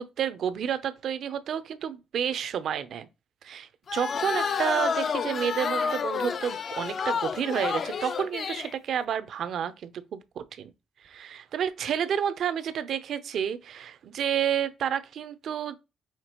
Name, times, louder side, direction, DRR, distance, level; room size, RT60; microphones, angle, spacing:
voice 1, 0.0-3.1 3.4-10.7 11.0-15.8, right 8 dB, 65° right, 0.5 m, -30 dB
sound 1, 3.9-8.7, left 6 dB, 50° left, 0.3 m, -30 dB
5.8 x 2.8 x 2.9 m
cardioid pair, 90°, 0 cm